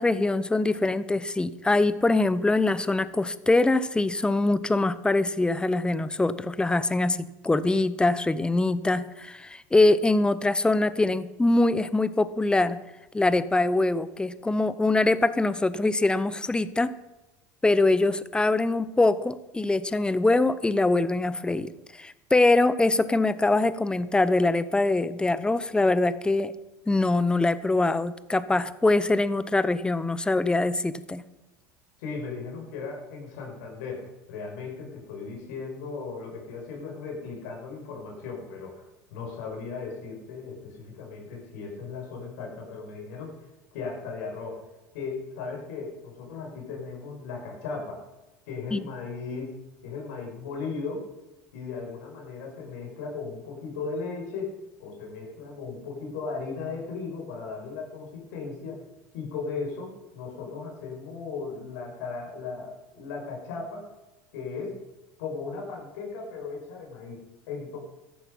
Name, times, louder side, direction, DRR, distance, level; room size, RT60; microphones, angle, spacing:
voice 1, 0.0-12.8 13.1-16.9 17.6-21.7 22.0-26.5 26.9-31.2 48.7-48.8, left 2 dB, 10° left, 15 dB, 0.8 m, -23 dB
voice 2, 32.0-43.4 43.7-44.6 44.9-48.0 48.5-51.1 51.5-54.5 54.8-58.8 59.1-63.9 64.3-64.8 65.2-67.8, left 4 dB, 80° left, 0 dB, 5.7 m, -37 dB
14.5 x 11.0 x 5.5 m, 1.0 s
supercardioid pair, 90°, 9 cm